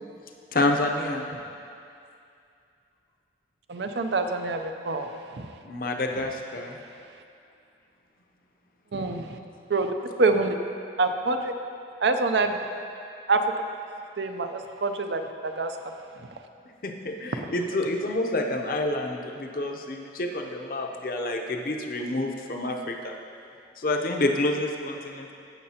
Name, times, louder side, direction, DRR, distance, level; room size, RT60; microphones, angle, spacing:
voice 1, 0.5-1.3 5.6-6.8 16.8-23.1 23.8-25.3, left 2 dB, 50° left, 2 dB, 0.7 m, -28 dB
voice 2, 3.7-5.5 8.9-9.4 9.7-10.6 11.0-11.5 12.0-12.6 13.3-13.5 14.2-15.8, right 3 dB, 75° right, 6 dB, 0.5 m, -26 dB
15.5 x 6.4 x 2.9 m, 2.5 s
head